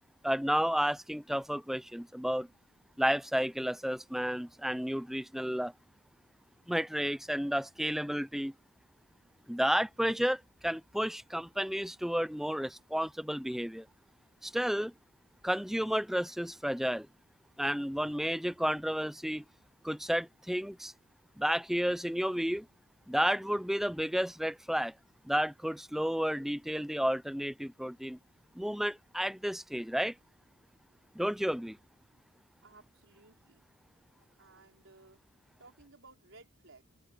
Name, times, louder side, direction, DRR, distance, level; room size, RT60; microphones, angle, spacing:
voice 1, 0.2-2.5 3.0-5.7 6.7-8.5 9.5-13.9 14.4-14.9 15.4-17.1 17.6-19.4 19.8-20.9 21.4-22.7 23.1-24.9 25.2-28.2 28.5-30.2 31.1-31.8, equal, ahead, 0.6 m, -31 dB
voice 2, 32.6-33.6 34.4-35.2 35.6-36.9, right 3 dB, 70° right, 4.5 m, -58 dB
open air
head